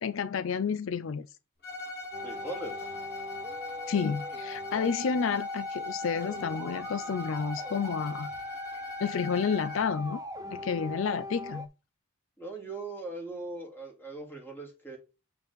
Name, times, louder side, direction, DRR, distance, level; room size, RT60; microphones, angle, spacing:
voice 1, 0.0-1.3 3.9-8.3 9.0-10.2 10.5-11.7, left 6 dB, 70° left, 0.4 m, -30 dB
Bowed string instrument, 1.6-10.0, left 2 dB, 50° left, 3.2 m, -43 dB
sound 1, 2.1-11.7, left 2 dB, 15° right, 0.7 m, -39 dB
voice 2, 2.2-2.9 12.4-15.0, right 2 dB, 10° left, 2.7 m, -40 dB
7.4 x 5.7 x 3.5 m
head